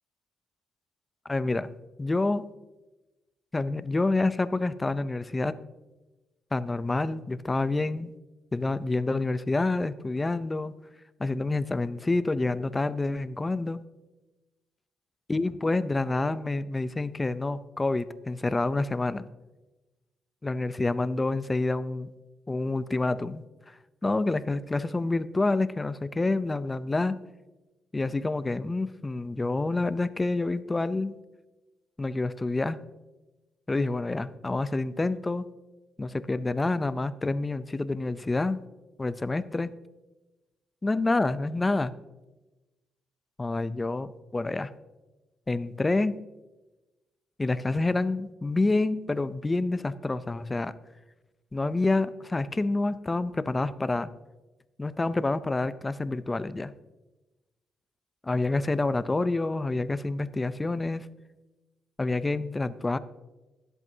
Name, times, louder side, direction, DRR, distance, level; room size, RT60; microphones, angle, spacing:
voice 1, 1.3-1.7 2.0-2.4 3.5-5.5 6.5-8.1 8.5-10.7 11.2-13.8 15.3-19.2 20.4-22.1 22.5-23.4 24.0-27.2 27.9-31.1 32.0-32.8 33.7-35.5 36.0-38.6 39.0-39.7 40.8-41.9 43.4-44.7 45.5-46.2 47.4-50.7 51.5-54.1 54.8-56.7 58.2-61.1 62.0-63.0, left 2 dB, 20° left, 14 dB, 0.5 m, -28 dB
22.0 x 8.1 x 2.8 m, 1.1 s
cardioid pair, 90°, 0 cm